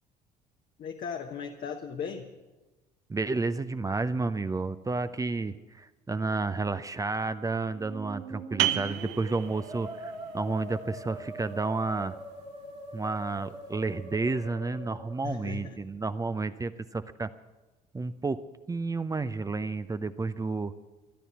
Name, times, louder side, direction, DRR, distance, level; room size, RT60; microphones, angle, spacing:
voice 1, 0.8-2.3 15.2-15.8, left 6 dB, 45° left, 3 dB, 1.1 m, -37 dB
voice 2, 3.1-12.2 12.9-17.3 17.9-18.4 18.7-20.7, right 3 dB, 15° right, 13 dB, 0.6 m, -31 dB
Musical instrument, 7.6-15.7, right 1 dB, 90° right, 3.1 m, -43 dB
sound 1, 8.6-14.0, right 14 dB, 60° right, 0.7 m, -36 dB
13.5 x 12.0 x 8.2 m, 1.2 s
figure-of-eight pair, 55°, 21 cm